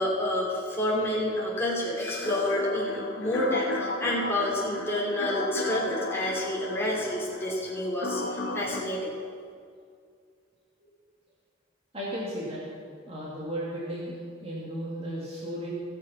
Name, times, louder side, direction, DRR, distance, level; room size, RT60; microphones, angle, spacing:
voice 1, 0.0-9.1, left 1 dB, 15° left, -5 dB, 3.1 m, -29 dB
sound 1, 2.2-8.8, left 2 dB, 75° left, 1.2 m, -35 dB
voice 2, 11.9-12.6 13.1-15.8, equal, 30° right, -6 dB, 2.2 m, -35 dB
17.0 x 7.4 x 5.6 m, 2.3 s
head